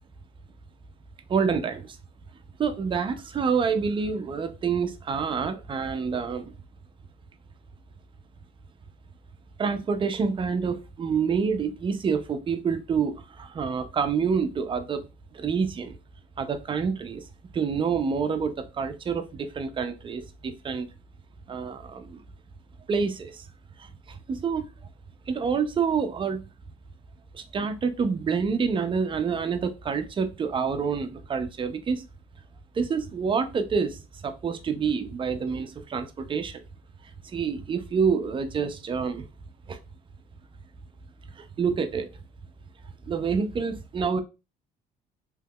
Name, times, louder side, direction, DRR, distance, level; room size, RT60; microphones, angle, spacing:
voice 1, 1.3-2.0 2.6-6.5 9.6-15.0 15.3-16.0 16.4-17.3 17.5-20.9 21.5-22.2 22.9-23.5 23.8-24.7 25.3-26.4 27.3-32.0 32.7-36.6 37.2-39.2 39.7-39.8 41.4-42.1 43.0-44.2, right 5 dB, 30° right, 0.4 m, -27 dB
3.4 x 3.0 x 2.2 m
cardioid pair, 110°, 17 cm